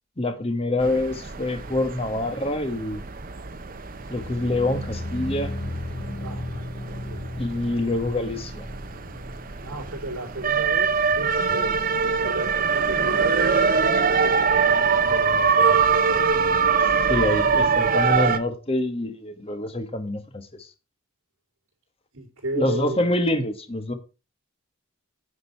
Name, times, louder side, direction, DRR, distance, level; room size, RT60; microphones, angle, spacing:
voice 1, 0.2-3.0 4.1-5.5 7.4-8.7 17.1-20.7 22.6-23.9, left 1 dB, 25° left, 1.2 m, -26 dB
sound 1, 0.8-18.4, right 5 dB, 40° right, 0.8 m, -24 dB
sound 2, 3.9-11.0 11.3-11.7 12.1-12.2, left 1 dB, 60° left, 1.1 m, -36 dB
voice 2, 6.2-6.7 7.0-7.2 9.6-11.8 12.2-14.7 15.1-16.7 22.1-23.2, right 2 dB, 70° right, 3.9 m, -34 dB
9.9 x 5.3 x 5.6 m
head